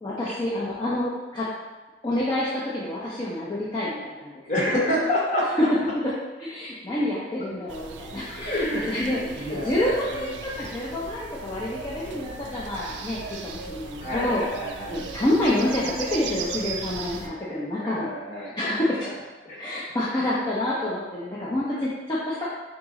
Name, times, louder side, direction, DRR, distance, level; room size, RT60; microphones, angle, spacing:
voice 1, 0.0-1.5 2.0-4.3 6.0-6.1 6.4-14.4 14.9-19.2 19.6-22.5, left 1 dB, 25° left, -8 dB, 0.5 m, -28 dB
voice 2, 4.5-5.5 8.3-10.5 12.1-12.8 14.0-15.1 17.8-19.1 19.5-19.8, left 1 dB, 45° left, -4 dB, 1.0 m, -29 dB
sound 1, 7.7-17.3, right 4 dB, 90° right, 0.4 m, -38 dB
3.9 x 3.0 x 3.6 m, 1.2 s
head